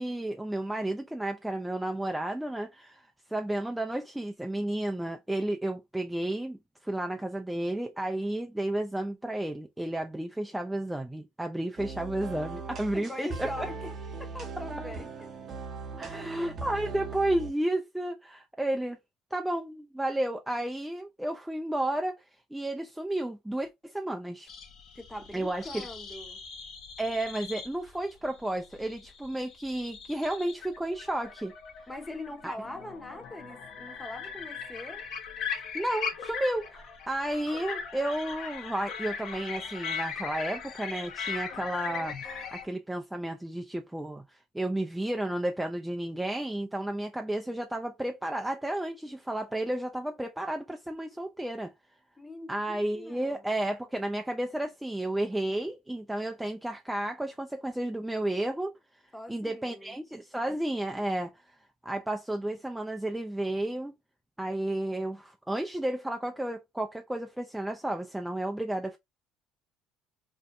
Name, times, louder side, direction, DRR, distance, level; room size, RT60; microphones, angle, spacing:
voice 1, 0.0-13.7 16.0-19.0 19.3-22.2 22.5-24.5 25.3-25.9 27.0-31.5 32.4-32.5 35.7-51.7 52.5-58.7 59.3-61.3 61.8-63.9 64.4-69.0, right 1 dB, 5° right, 0.3 m, -32 dB
sound 1, 11.8-17.5, right 4 dB, 45° right, 0.7 m, -39 dB
voice 2, 12.9-13.9 14.2-15.3 16.1-16.6 24.9-26.4 31.9-35.0 52.2-53.6 59.1-60.0, left 1 dB, 10° left, 0.7 m, -42 dB
sound 2, 24.5-42.6, left 6 dB, 60° left, 0.6 m, -39 dB
2.5 x 2.1 x 2.5 m
supercardioid pair, 80°, 0 cm